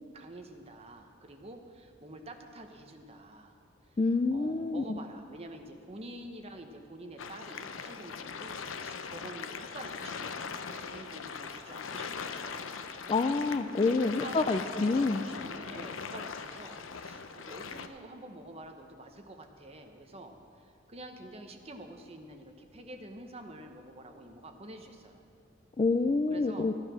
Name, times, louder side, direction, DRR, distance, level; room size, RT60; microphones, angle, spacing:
voice 1, 0.1-3.6 4.3-13.1 13.8-25.2 26.3-26.7, right 1 dB, 30° right, 5 dB, 1.0 m, -47 dB
voice 2, 4.0-5.0 13.1-15.2 25.8-26.7, left 3 dB, 25° left, 10 dB, 0.3 m, -27 dB
sound 1, 7.2-17.9, left 5 dB, 90° left, 0.7 m, -40 dB
14.0 x 9.7 x 6.2 m, 2.3 s
head